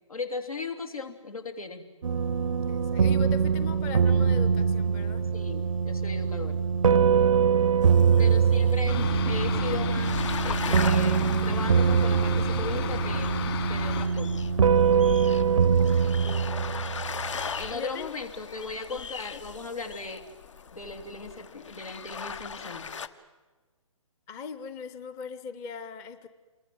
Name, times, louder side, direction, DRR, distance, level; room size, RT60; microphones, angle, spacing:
voice 1, 0.1-1.9 5.3-6.6 8.2-14.5 17.6-20.2 20.7-22.9, left 3 dB, 85° left, 6 dB, 3.3 m, -37 dB
sound 1, 2.0-17.5, right 6 dB, 75° right, 0.7 m, -23 dB
voice 2, 2.7-5.2 7.5-8.5 15.1-17.2 17.7-18.1 18.9-19.0 24.3-26.3, left 6 dB, 15° left, 12 dB, 0.8 m, -41 dB
sound 2, 7.8-23.1, left 6 dB, 60° left, 1.3 m, -39 dB
Fixed-wing aircraft airplane, 8.9-14.1, left 9 dB, 45° left, 3.4 m, -34 dB
28.0 x 23.0 x 7.8 m, 1.3 s
hypercardioid pair, 145°, 18 cm